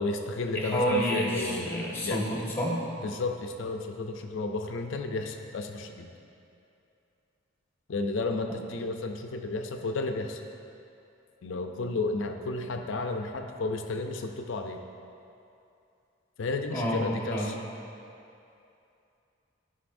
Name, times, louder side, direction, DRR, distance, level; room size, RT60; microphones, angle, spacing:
voice 1, 0.0-1.7 2.0-2.3 3.0-6.1 7.9-10.4 11.4-14.8 16.4-17.5, left 3 dB, 65° left, 5 dB, 0.5 m, -32 dB
voice 2, 0.5-2.8 16.7-17.0 17.3-17.6, equal, 10° left, -4 dB, 1.4 m, -29 dB
13.5 x 5.3 x 2.6 m, 2.6 s
head